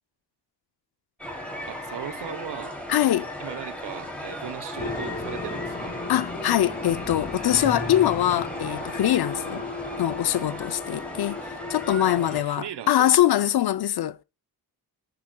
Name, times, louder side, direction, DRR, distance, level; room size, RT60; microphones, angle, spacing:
sound 1, 1.2-12.4, left 1 dB, 5° left, 2.7 m, -37 dB
voice 1, 1.7-2.8 3.4-6.0 12.1-13.1, right 9 dB, 85° right, 0.8 m, -38 dB
voice 2, 2.9-3.3 6.1-9.6 10.0-11.4 11.7-14.2, left 12 dB, 70° left, 0.6 m, -23 dB
sound 2, 4.8-12.0, left 3 dB, 20° left, 2.2 m, -35 dB
14.0 x 6.0 x 2.2 m
wide cardioid pair, 120°, 40 cm